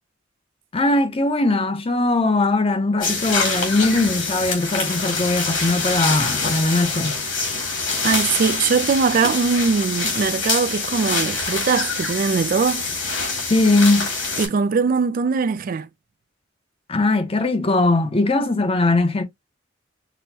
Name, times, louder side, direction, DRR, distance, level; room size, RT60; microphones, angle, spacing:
voice 1, 0.7-7.2 13.5-14.1 16.9-19.2, left 2 dB, 30° left, 0.6 m, -20 dB
sound 1, 3.0-14.5, left 4 dB, 80° left, 2.3 m, -25 dB
voice 2, 8.0-12.8 14.4-15.9, right 5 dB, 45° right, 0.3 m, -21 dB
6.1 x 2.0 x 2.8 m
head